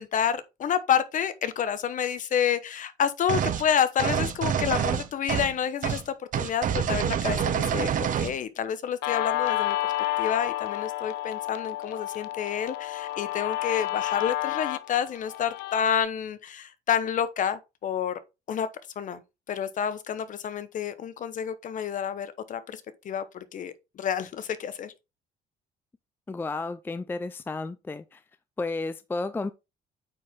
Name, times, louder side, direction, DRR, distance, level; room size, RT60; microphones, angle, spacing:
voice 1, 0.0-9.8 10.2-18.2 18.5-18.7 19.0-19.2 19.5-24.9, left 8 dB, 50° left, 1.0 m, -29 dB
sound 1, 3.3-3.6 4.0-5.5 5.8-6.0 6.3-8.4, right 8 dB, 50° right, 0.9 m, -27 dB
Guitar, 9.0-16.0, left 16 dB, 90° left, 0.7 m, -30 dB
voice 2, 26.3-28.2 28.6-29.5, left 3 dB, 10° left, 0.4 m, -32 dB
8.8 x 4.8 x 3.7 m
cardioid pair, 110°, 17 cm